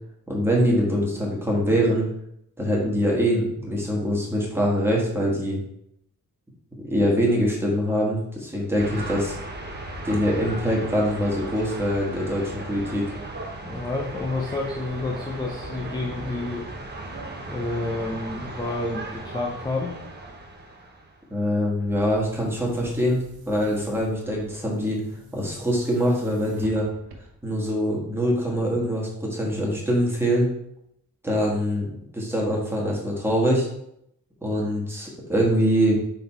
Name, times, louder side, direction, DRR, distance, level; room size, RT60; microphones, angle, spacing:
voice 1, 0.3-2.1 2.6-5.6 6.8-9.3 10.0-13.0 21.3-25.0 25.3-26.9 27.4-30.5 31.2-33.7 34.4-36.0, equal, 5° right, -3 dB, 1.5 m, -23 dB
sound 1, 8.8-21.2, right 2 dB, 30° right, 0.9 m, -36 dB
voice 2, 13.7-16.6 17.5-19.9, left 2 dB, 10° left, -1 dB, 0.5 m, -29 dB
Boom, 21.8-27.6, equal, 85° right, 1.0 m, -48 dB
5.6 x 3.7 x 4.4 m, 0.76 s
wide cardioid pair, 175°, 35 cm